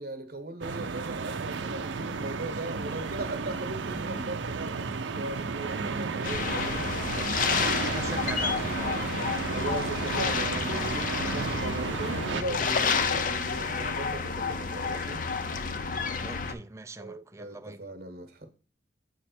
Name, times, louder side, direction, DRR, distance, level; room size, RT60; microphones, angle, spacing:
voice 1, 0.0-7.8 9.5-15.2 17.0-18.5, right 1 dB, 55° right, 1.0 m, -38 dB
sound 1, 0.6-12.4, right 4 dB, 80° right, 0.5 m, -33 dB
sound 2, 6.2-16.5, left 5 dB, 45° left, 0.5 m, -30 dB
voice 2, 7.1-9.0 16.2-17.8, right 2 dB, 15° right, 0.4 m, -41 dB
7.9 x 3.2 x 4.3 m
head